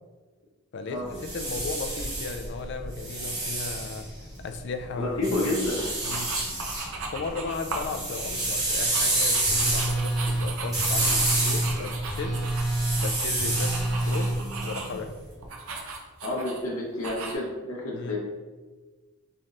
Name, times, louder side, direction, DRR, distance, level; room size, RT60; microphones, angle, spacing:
sound 1, 1.0-4.6 5.2-6.9 7.2-15.1, right 2 dB, 20° right, 1.0 m, -29 dB
voice 1, 1.3-4.1 4.4-5.4 6.0-6.3 7.1-12.4 12.9-15.1 17.9-18.1, left 4 dB, 55° left, 7 dB, 0.3 m, -35 dB
voice 2, 4.9-5.9 16.2-18.2, left 2 dB, 90° left, -4 dB, 0.7 m, -29 dB
sound 2, 6.0-7.9 8.3-15.0 15.4-16.6 17.0-17.3, right 4 dB, 80° right, 0.6 m, -37 dB
Telephone, 9.4-14.4, right 1 dB, 5° left, 1.2 m, -28 dB
4.0 x 3.3 x 2.5 m, 1.3 s
head